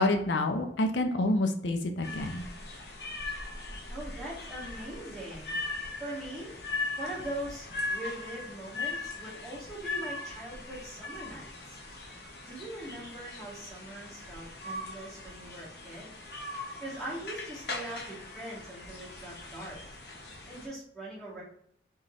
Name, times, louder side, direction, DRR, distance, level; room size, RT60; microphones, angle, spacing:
voice 1, 0.0-2.4, left 2 dB, 90° left, 6 dB, 0.5 m, -28 dB
sound 1, 2.0-20.7, left 3 dB, 65° left, 0.8 m, -40 dB
voice 2, 3.9-5.6 6.0-6.5 7.0-11.8 12.4-16.1 16.8-19.8 20.5-21.4, right 1 dB, ahead, -8 dB, 1.8 m, -41 dB
4.1 x 3.7 x 3.0 m, 0.67 s
head